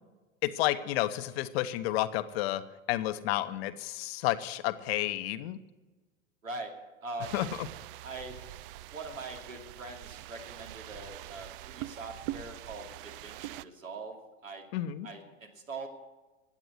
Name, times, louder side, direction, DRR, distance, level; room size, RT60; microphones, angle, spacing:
voice 1, 0.4-2.6 2.9-5.6 7.3-7.5 14.7-15.1, left 15 dB, 50° left, 12 dB, 1.0 m, -31 dB
voice 2, 6.4-6.7 7.0-7.4 8.0-8.4 8.9-14.6 15.0-15.9, right 3 dB, 80° right, 2 dB, 2.7 m, -42 dB
sound 1, 7.2-13.7, right 15 dB, 45° right, 0.5 m, -44 dB
15.5 x 9.0 x 8.1 m, 1.2 s
figure-of-eight pair, 85°, 39 cm